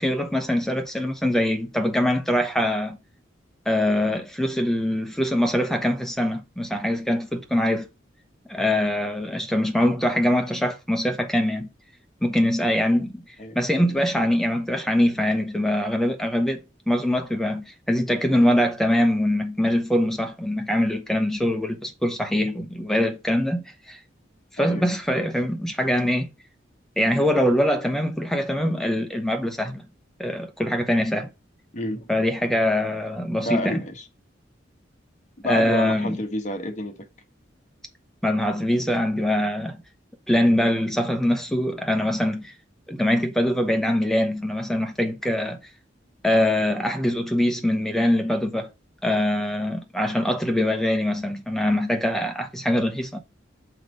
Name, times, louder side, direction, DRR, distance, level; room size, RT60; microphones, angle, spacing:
voice 1, 0.0-3.0 3.7-7.8 8.5-11.7 12.2-24.0 24.5-26.3 27.0-29.9 30.2-31.3 32.1-33.8 35.4-36.2 38.2-39.8 40.3-42.5 42.9-45.6 46.2-48.7 49.0-53.2, left 1 dB, ahead, 0.9 m, -23 dB
voice 2, 24.6-24.9 31.7-32.1 33.4-34.0 35.4-37.1, left 1 dB, 40° left, 1.3 m, -29 dB
5.9 x 4.9 x 5.1 m
head